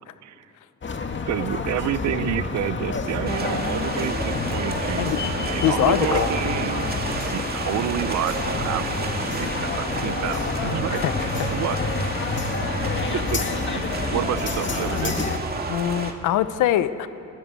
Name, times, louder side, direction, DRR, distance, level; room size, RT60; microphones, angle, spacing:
sound 1, 0.8-15.4, left 4 dB, 40° left, 1.8 m, -28 dB
voice 1, 1.3-5.2 5.4-7.0 7.3-11.0 11.5-12.0 13.3-13.4 13.7-15.3, right 12 dB, 65° right, 14 dB, 0.7 m, -29 dB
sound 2, 3.3-16.1, right 3 dB, 30° right, 2.4 m, -31 dB
voice 2, 5.6-6.3 11.0-11.3 15.7-17.1, left 12 dB, 85° left, 13 dB, 1.0 m, -22 dB
30.0 x 15.5 x 8.2 m, 2.9 s
cardioid pair, 90°, 30 cm